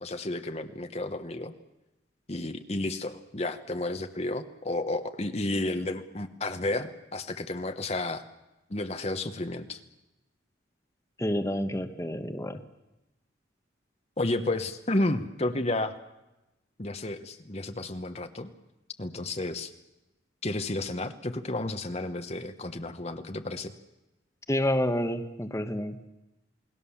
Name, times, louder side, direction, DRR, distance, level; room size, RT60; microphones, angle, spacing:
voice 1, 0.0-1.5 2.3-8.2 8.7-9.8 14.2-15.9 16.8-18.5 19.0-19.7 20.4-23.7, left 2 dB, 35° left, 7 dB, 1.1 m, -32 dB
voice 2, 11.2-12.6 24.5-26.1, left 1 dB, 15° left, 7 dB, 1.2 m, -29 dB
28.5 x 20.0 x 7.2 m, 0.98 s
head